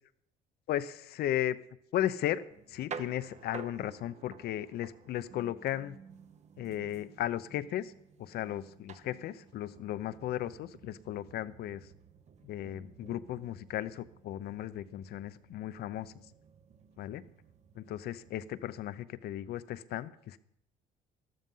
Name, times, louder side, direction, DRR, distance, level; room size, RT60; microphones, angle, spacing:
voice 1, 0.7-1.6 1.9-6.0 6.6-7.9 8.2-11.9 12.4-16.1 17.0-17.2 17.8-20.4, left 12 dB, 70° left, 14 dB, 0.7 m, -35 dB
sound 1, 2.5-18.7, right 6 dB, 45° right, 0.9 m, -52 dB
13.0 x 12.5 x 5.5 m, 0.75 s
cardioid pair, 110°, 17 cm